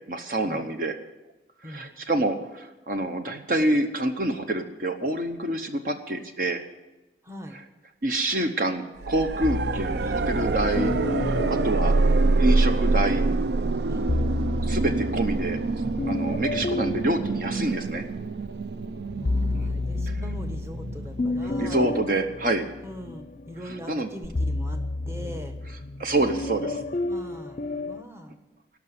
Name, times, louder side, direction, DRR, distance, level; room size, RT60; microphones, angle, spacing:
voice 1, 0.1-1.0 1.6-6.6 7.5-7.6 8.0-10.9 11.2-11.9 12.4-13.2 14.6-15.6 16.1-18.0 19.5-19.7 20.1-20.2 21.4-22.7 23.6-24.1 26.0-26.8, right 1 dB, 50° right, 6 dB, 0.9 m, -27 dB
voice 2, 7.2-7.6 13.9-14.1 16.2-16.4 19.2-21.9 22.8-25.5 27.1-27.6 27.9-28.4, equal, 15° right, 5 dB, 1.1 m, -41 dB
sound 1, 9.0-21.9 24.2-24.3, right 3 dB, 65° right, 0.4 m, -26 dB
sound 2, 9.4-12.9 13.9-18.3 18.8-28.0, left 2 dB, 40° left, 0.5 m, -31 dB
18.0 x 6.1 x 9.4 m, 1.0 s
head